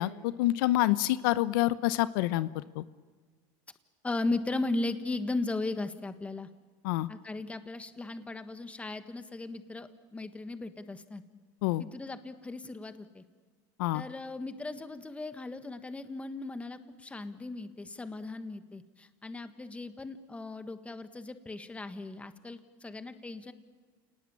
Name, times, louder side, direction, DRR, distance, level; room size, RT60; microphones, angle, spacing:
voice 1, 0.0-2.8 6.8-7.1 11.6-11.8 13.8-14.0, left 16 dB, 80° left, 15 dB, 0.8 m, -27 dB
voice 2, 4.0-6.5 7.1-11.2 11.8-13.2 13.9-23.5, left 2 dB, 10° left, 10 dB, 1.5 m, -37 dB
28.5 x 19.0 x 8.8 m, 1.4 s
supercardioid pair, 125°, 11 cm